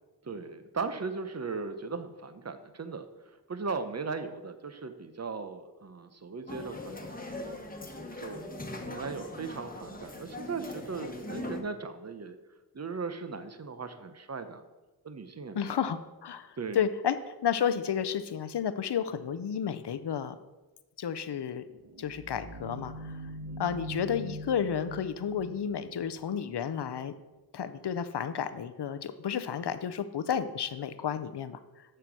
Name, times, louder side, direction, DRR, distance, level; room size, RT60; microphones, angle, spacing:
voice 1, 0.2-3.0 3.5-7.6 8.2-12.4 12.7-14.6 15.0-15.7 16.6-16.8 23.5-23.6, right 4 dB, 40° right, 10 dB, 0.8 m, -38 dB
sound 1, 6.5-11.6, left 2 dB, 20° left, 1.2 m, -41 dB
voice 2, 15.5-17.2 17.4-20.4 21.0-21.6 22.0-23.2 23.6-27.1 27.5-31.6, left 8 dB, 90° left, 11 dB, 0.6 m, -32 dB
sound 2, 21.5-26.9, right 1 dB, 70° right, 0.9 m, -43 dB
7.6 x 6.8 x 6.0 m, 1.1 s
wide cardioid pair, 85°, 39 cm